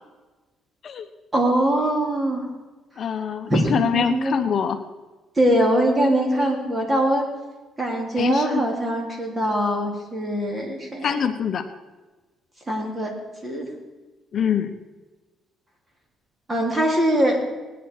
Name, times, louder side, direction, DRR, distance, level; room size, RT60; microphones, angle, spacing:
voice 1, 1.3-2.4 3.5-4.3 5.4-7.2 7.8-11.2 12.7-13.1 13.4-13.7 16.5-17.4, right 1 dB, 20° right, 0 dB, 3.4 m, -22 dB
voice 2, 3.0-4.8 8.2-8.6 11.0-11.6 14.3-14.7, left 7 dB, 50° left, 8 dB, 0.9 m, -24 dB
19.5 x 10.0 x 4.8 m, 1.2 s
cardioid pair, 110°, 0 cm